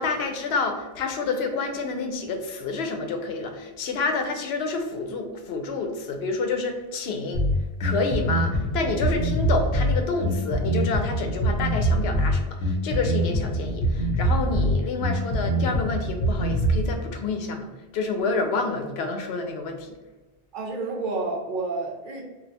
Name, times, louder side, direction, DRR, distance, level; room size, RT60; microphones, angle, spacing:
voice 1, 0.0-7.4 7.8-19.9, left 4 dB, 80° left, 5 dB, 0.8 m, -28 dB
Bass guitar, 7.3-16.9, right 1 dB, 50° left, 1.0 m, -24 dB
voice 2, 20.5-22.2, right 3 dB, 60° right, -1 dB, 0.7 m, -29 dB
2.4 x 2.2 x 4.0 m, 1.2 s
omnidirectional pair, 1.0 m